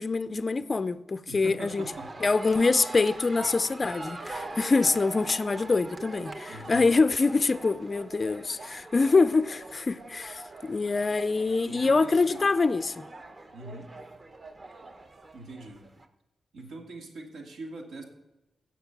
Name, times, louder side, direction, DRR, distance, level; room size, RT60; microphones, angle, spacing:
voice 1, 0.0-1.8 2.2-13.1, left 3 dB, 30° left, 0.3 m, -25 dB
voice 2, 1.3-2.1 6.5-7.0 11.6-12.4 13.5-13.9 15.3-15.8 16.5-18.0, right 2 dB, 90° right, 2.4 m, -42 dB
sound 1, 1.7-16.1, right 2 dB, 30° right, 0.8 m, -42 dB
16.5 x 5.9 x 5.9 m
wide cardioid pair, 145°, 0 cm